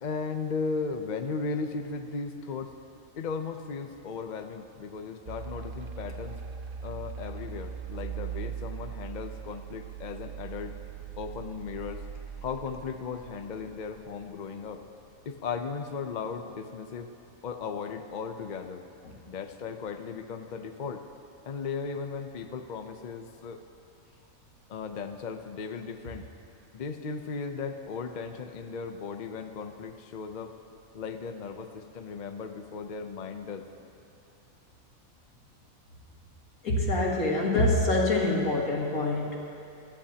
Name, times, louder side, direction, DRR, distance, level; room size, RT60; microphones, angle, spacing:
voice 1, 0.0-2.7 3.2-6.4 6.8-10.8 11.2-12.0 12.4-14.8 15.3-17.1 17.4-18.8 19.3-21.0 21.4-23.6 24.7-26.3 26.7-30.5 30.9-33.7, left 5 dB, 45° left, 6 dB, 0.6 m, -36 dB
sound 1, 5.3-14.4, right 7 dB, 60° right, 0.5 m, -40 dB
voice 2, 36.6-39.4, left 2 dB, 85° left, -2 dB, 2.4 m, -25 dB
25.0 x 13.0 x 2.9 m, 2.8 s
omnidirectional pair, 1.5 m